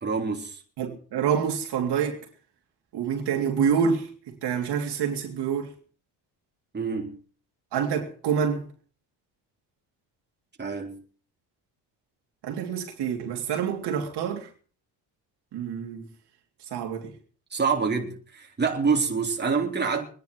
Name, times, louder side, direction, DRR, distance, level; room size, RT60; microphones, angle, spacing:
voice 1, 0.0-0.6 6.7-7.2 10.6-11.0 17.5-20.1, right 5 dB, 25° right, 3.6 m, -26 dB
voice 2, 0.8-2.3 2.9-5.7 7.7-8.7 12.4-14.5 15.5-16.1 16.7-17.1, right 7 dB, 65° right, 3.3 m, -27 dB
25.0 x 10.5 x 4.7 m
cardioid pair, 105°, 42 cm